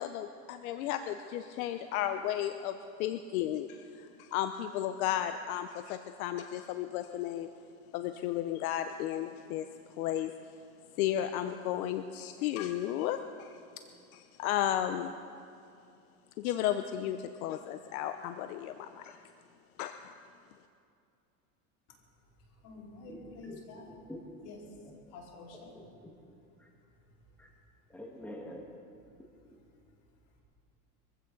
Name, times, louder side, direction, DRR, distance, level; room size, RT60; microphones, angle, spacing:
voice 1, 0.0-7.5 7.9-9.7 10.0-10.3 11.0-13.5 14.1-15.1 16.4-19.2 19.8-20.1, left 11 dB, 80° left, 0.8 m, -34 dB
voice 2, 22.6-23.9 24.4-24.6 25.1-25.7, left 3 dB, 60° left, 4.4 m, -48 dB
voice 3, 23.4-24.2 25.7-25.9 27.4-27.5 27.9-28.6, left 1 dB, 5° left, 1.6 m, -46 dB
23.0 x 15.5 x 3.9 m
supercardioid pair, 140°, 43 cm